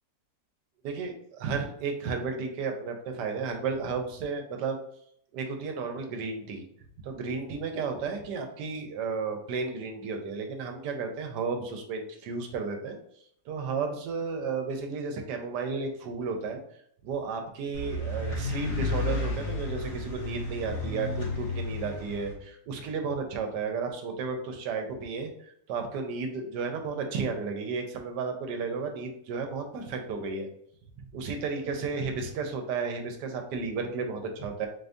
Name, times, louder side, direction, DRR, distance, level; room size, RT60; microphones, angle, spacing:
voice 1, 0.8-4.8 5.3-6.7 7.0-13.0 13.5-16.6 17.0-25.3 25.7-30.5 31.1-34.7, right 4 dB, 80° right, 5 dB, 1.3 m, -33 dB
sound 1, 17.7-22.3, left 2 dB, 75° left, 1.8 m, -32 dB
3.9 x 2.6 x 3.4 m, 0.68 s
omnidirectional pair, 1.8 m